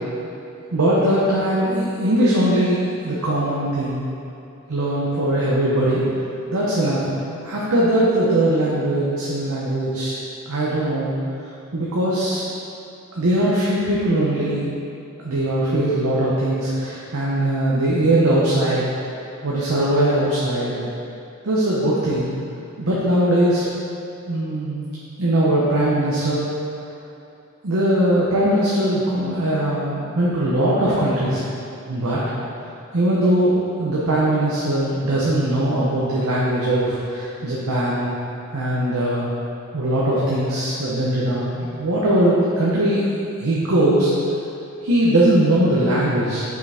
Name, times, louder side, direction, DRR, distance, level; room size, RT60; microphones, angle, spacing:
voice 1, 0.7-4.0 4.7-6.0 6.5-7.0 7.4-10.1 10.5-11.1 11.7-12.4 13.2-14.6 15.2-18.8 19.4-20.8 21.4-22.3 22.8-23.6 24.3-24.9 25.2-26.5 27.6-31.4 31.9-32.2 32.9-33.5 33.8-38.1 38.5-39.3 39.7-43.1 43.4-44.1 44.8-46.4, right 1 dB, 90° right, -7 dB, 0.8 m, -20 dB
5.9 x 5.0 x 3.4 m, 2.7 s
head